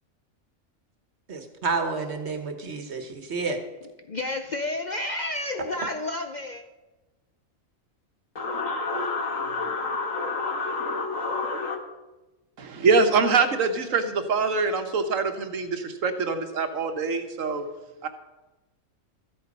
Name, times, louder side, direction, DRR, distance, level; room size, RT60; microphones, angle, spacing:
voice 1, 1.3-3.6, right 4 dB, 55° right, 6 dB, 1.5 m, -30 dB
voice 2, 4.1-6.6, left 2 dB, 45° left, 6 dB, 0.6 m, -30 dB
voice 3, 8.4-11.8, left 3 dB, 75° left, 4 dB, 1.9 m, -29 dB
voice 4, 12.6-17.6 18.0-18.1, right 4 dB, 75° right, 7 dB, 1.5 m, -24 dB
13.5 x 8.1 x 5.3 m, 1.1 s
omnidirectional pair, 1.4 m